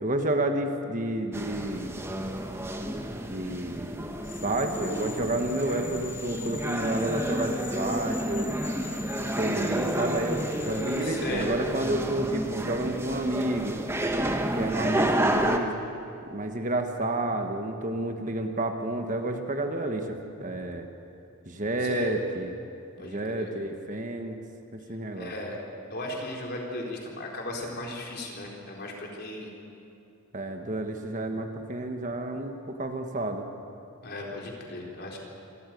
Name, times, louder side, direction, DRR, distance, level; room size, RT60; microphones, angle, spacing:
voice 1, 0.0-2.0 3.2-4.0 4.4-8.6 9.4-13.8 14.5-15.7 16.3-20.9 21.5-22.5 23.0-24.4 24.7-25.3 30.3-33.5, right 1 dB, 35° right, 5 dB, 1.3 m, -30 dB
sound 1, 1.3-15.6, right 1 dB, 10° right, 1.2 m, -30 dB
sound 2, 4.2-11.2, left 5 dB, 85° left, 2.3 m, -43 dB
voice 2, 11.0-11.5 21.8-22.1 23.0-23.5 25.2-25.6 25.9-29.5 34.0-35.2, left 1 dB, 45° left, -1 dB, 4.0 m, -36 dB
26.0 x 13.5 x 9.3 m, 2.7 s
head